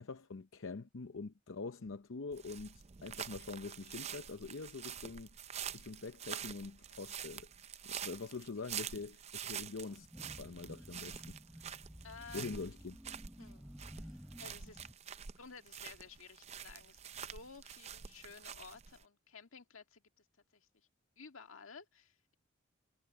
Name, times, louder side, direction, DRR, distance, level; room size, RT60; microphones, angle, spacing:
voice 1, 0.0-5.3 5.7-7.5 7.8-10.1 10.4-11.4 12.3-13.0, left 4 dB, 70° left, 0.7 m, -44 dB
sound 1, 2.3-19.0, right 8 dB, 30° right, 0.5 m, -47 dB
sound 2, 9.8-14.9, equal, 5° right, 0.9 m, -53 dB
voice 2, 12.0-12.8 13.4-13.7 14.0-14.9 15.4-20.3 20.5-20.9 21.2-22.3, left 5 dB, 90° left, 1.8 m, -55 dB
head